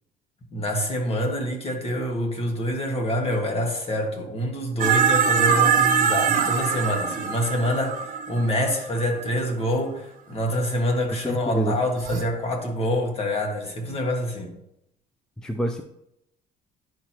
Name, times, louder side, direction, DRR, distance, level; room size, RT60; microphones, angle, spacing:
voice 1, 0.5-14.5, equal, 35° left, 1.7 m, -26 dB
sound 1, 4.8-9.2 12.0-12.2, right 7 dB, 55° right, 0.8 m, -22 dB
voice 2, 11.1-11.8 15.4-15.8, equal, 5° left, 0.4 m, -27 dB
11.0 x 4.5 x 2.9 m
cardioid pair, 110°, 17 cm